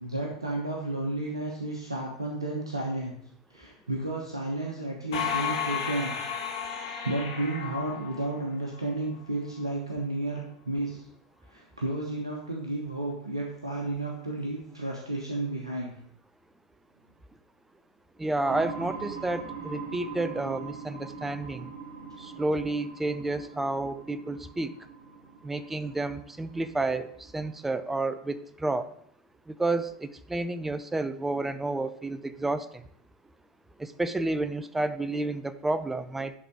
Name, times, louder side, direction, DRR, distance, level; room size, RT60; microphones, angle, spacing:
voice 1, 0.0-3.1 3.5-6.2 7.0-11.0 11.5-15.9, right 2 dB, 85° right, 0 dB, 1.2 m, -32 dB
sound 1, 5.1-8.8, left 7 dB, 60° left, 2.2 m, -33 dB
voice 2, 18.2-21.7 22.2-24.8 25.4-28.9 29.5-32.7 33.8-36.3, right 2 dB, 10° right, 13 dB, 0.5 m, -30 dB
sound 2, 18.4-28.0, right 5 dB, 60° right, 2.8 m, -42 dB
11.5 x 4.0 x 4.6 m, 0.68 s
figure-of-eight pair, 85°, 3 cm